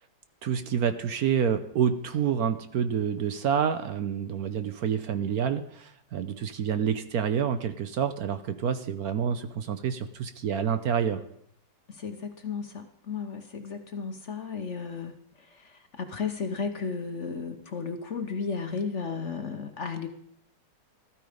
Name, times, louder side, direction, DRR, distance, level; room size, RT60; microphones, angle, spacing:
voice 1, 0.4-11.2, right 7 dB, 65° right, 10 dB, 1.2 m, -28 dB
voice 2, 11.9-20.1, left 5 dB, 50° left, 7 dB, 1.1 m, -34 dB
14.0 x 13.0 x 5.0 m, 0.69 s
omnidirectional pair, 1.9 m